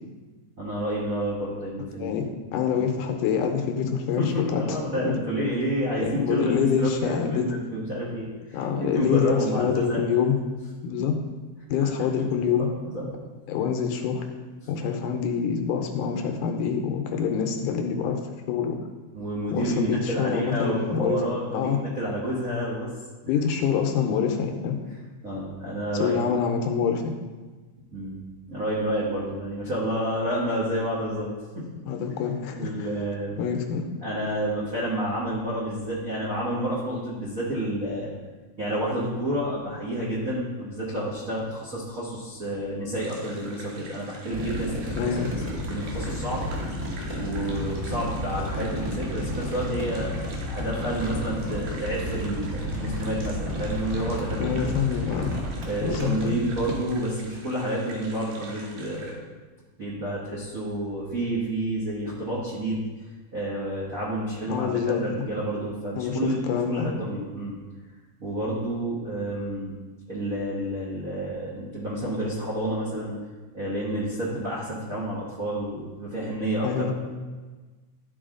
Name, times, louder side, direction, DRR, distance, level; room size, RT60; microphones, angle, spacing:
voice 1, 0.6-2.3 2.7-2.9 4.2-10.0 11.8-13.1 14.6-14.7 19.1-22.9 25.2-26.3 27.9-28.2 28.5-31.3 31.5-31.6 32.5-33.4 34.0-38.1 38.6-45.4 45.7-46.4 47.1-54.8 55.6-59.2 59.8-62.8 63.3-67.6 68.2-69.8 70.1-73.2 73.5-76.9, right 1 dB, 60° right, -8 dB, 0.9 m, -30 dB
voice 2, 2.5-4.6 5.0-5.1 6.0-7.5 8.5-10.4 10.8-11.1 11.7-12.7 13.5-14.3 14.7-18.2 18.5-18.8 19.5-21.2 21.5-21.8 23.2-24.8 26.0-27.1 31.9-32.9 33.4-33.9 45.0-45.3 54.4-55.3 55.8-56.4 64.5-65.0 66.0-66.9 76.6-76.9, left 7 dB, 80° left, 4 dB, 2.2 m, -26 dB
sound 1, 43.0-59.1, right 2 dB, 85° right, 2.8 m, -45 dB
sound 2, 44.3-56.9, left 1 dB, 25° right, 0.7 m, -32 dB
12.0 x 4.7 x 3.8 m, 1.3 s
omnidirectional pair, 3.8 m